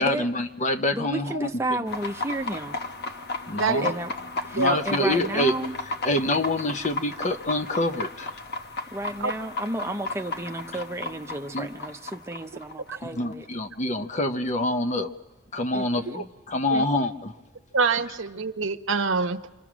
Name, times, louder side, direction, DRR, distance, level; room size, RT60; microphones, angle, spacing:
voice 1, 0.0-1.5 3.5-3.9 4.5-5.5 6.0-8.3 11.5-11.7 13.0-15.1 15.5-17.3, left 1 dB, 40° left, 0.9 m, -26 dB
voice 2, 0.9-2.8 3.8-4.1 4.5-5.8 8.9-13.5 15.7-16.3, right 2 dB, 15° right, 0.8 m, -32 dB
sound 1, 1.9-13.3, left 3 dB, 55° left, 1.1 m, -34 dB
voice 3, 3.5-3.8 4.6-4.8 9.2-9.3 16.7-16.8 17.7-19.4, right 4 dB, 75° right, 0.9 m, -25 dB
27.0 x 24.5 x 6.2 m
head